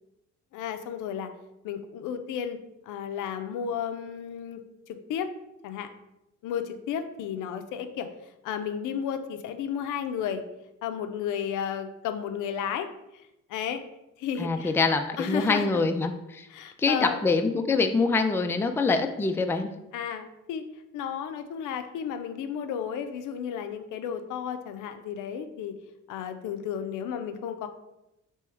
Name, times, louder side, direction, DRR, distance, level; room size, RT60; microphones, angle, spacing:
voice 1, 0.5-1.3 1.6-2.6 2.9-4.6 4.9-5.3 5.6-5.9 6.4-8.1 8.4-10.4 10.8-12.9 13.5-13.8 14.2-14.8 15.2-15.9 16.5-17.2 19.9-20.6 20.9-25.7 26.1-27.7, left 8 dB, 85° left, 7 dB, 0.5 m, -33 dB
voice 2, 14.4-16.5 16.8-19.7, left 3 dB, 10° left, 6 dB, 0.3 m, -25 dB
3.4 x 3.0 x 4.4 m, 0.90 s
cardioid pair, 90°, 30 cm